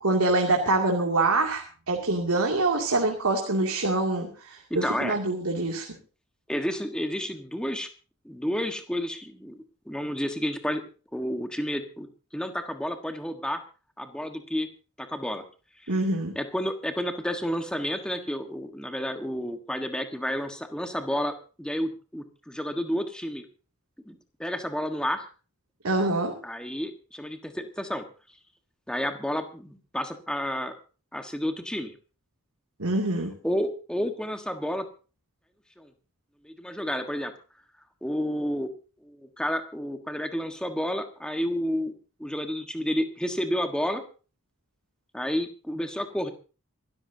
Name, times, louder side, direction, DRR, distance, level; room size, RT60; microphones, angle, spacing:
voice 1, 0.0-5.9 15.9-16.4 25.8-26.4 32.8-33.3, right 2 dB, 90° right, 0 dB, 2.6 m, -25 dB
voice 2, 4.7-5.2 6.5-7.9 8.2-10.8 11.1-12.1 12.3-13.6 14.0-14.7 15.0-15.4 15.8-15.9 16.3-23.4 24.0-25.3 26.0-26.1 26.4-28.0 28.9-30.7 31.1-31.9 33.4-34.9 35.8-35.9 36.4-37.3 38.0-38.7 39.0-41.9 42.2-44.0 45.1-46.3, equal, 5° left, 6 dB, 1.4 m, -30 dB
26.0 x 13.5 x 2.8 m, 0.36 s
head